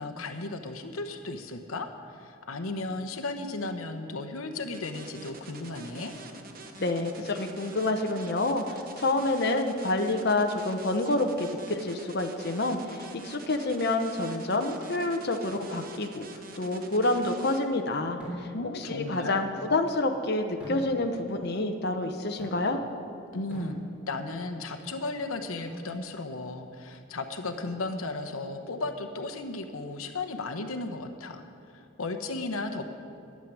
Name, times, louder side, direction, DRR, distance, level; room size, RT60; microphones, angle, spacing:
voice 1, 0.0-6.1 18.5-19.4 23.3-23.8 24.1-31.4 31.7-32.9, left 3 dB, 85° left, 7 dB, 0.9 m, -35 dB
sound 1, 4.7-17.6, right 3 dB, 45° right, 1.0 m, -46 dB
voice 2, 6.8-16.3 16.6-18.5 18.7-22.8, left 2 dB, 50° left, 4 dB, 0.8 m, -28 dB
sound 2, 18.2-18.8 20.6-21.3 22.4-23.0 23.5-24.3 25.7-26.0 27.5-28.2, right 1 dB, 5° right, 3.6 m, -41 dB
12.0 x 7.6 x 9.7 m, 2.7 s
head